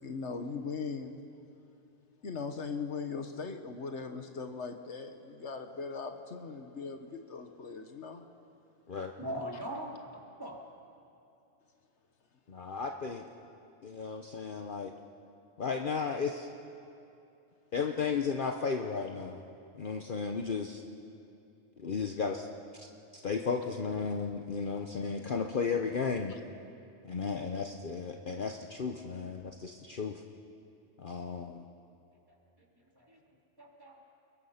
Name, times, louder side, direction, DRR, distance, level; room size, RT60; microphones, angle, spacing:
voice 1, 0.0-1.2 2.2-8.2, left 5 dB, 70° left, 6 dB, 1.4 m, -39 dB
voice 2, 9.2-10.6 32.9-33.2 33.6-34.0, equal, 20° right, -2 dB, 3.3 m, -40 dB
voice 3, 12.5-13.3 13.8-14.9 15.6-16.5 17.7-19.4 19.7-20.8 21.8-22.5 22.8-22.9 23.1-26.3 27.0-30.2 31.0-31.6, left 5 dB, 45° left, 4 dB, 1.0 m, -34 dB
30.0 x 22.0 x 5.8 m, 2.8 s
omnidirectional pair, 1.2 m